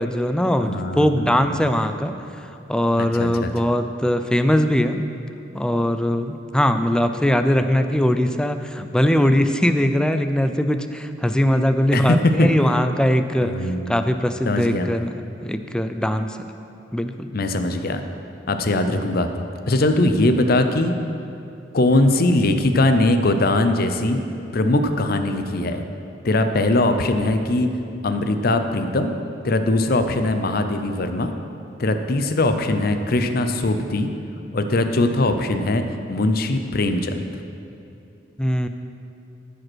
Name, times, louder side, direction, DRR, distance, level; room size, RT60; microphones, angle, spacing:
voice 1, 0.0-2.1 2.4-5.0 5.5-16.5 16.9-17.3 38.4-38.7, equal, 5° left, 8 dB, 0.4 m, -21 dB
voice 2, 0.6-1.6 3.0-3.5 11.9-12.5 13.4-14.0 14.4-14.9 17.3-18.0 18.5-19.3 19.7-20.9 21.7-24.2 24.5-25.8 26.2-27.7 28.0-29.1 29.4-31.3 31.8-34.1 34.5-37.2, left 2 dB, 55° left, 7 dB, 0.7 m, -21 dB
14.0 x 5.2 x 6.2 m, 2.8 s
head